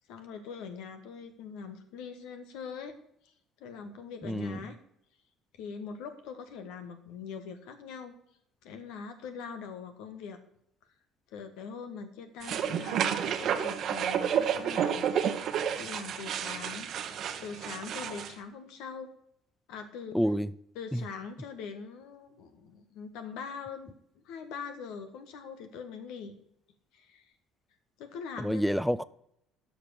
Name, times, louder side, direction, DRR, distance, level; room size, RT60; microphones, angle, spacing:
voice 1, 0.1-2.9 3.2-3.3 3.6-4.8 5.5-8.1 8.6-10.4 11.3-15.1 15.4-19.1 19.7-20.2 20.7-26.3 26.9-27.3 28.0-28.6, left 6 dB, 65° left, 1.5 m, -42 dB
voice 2, 4.2-4.6 20.1-20.5 20.9-21.0 28.4-29.0, equal, ahead, 0.5 m, -28 dB
sound 1, 12.4-18.3, right 8 dB, 55° right, 1.1 m, -30 dB
12.0 x 5.8 x 6.7 m
hypercardioid pair, 55°, 0 cm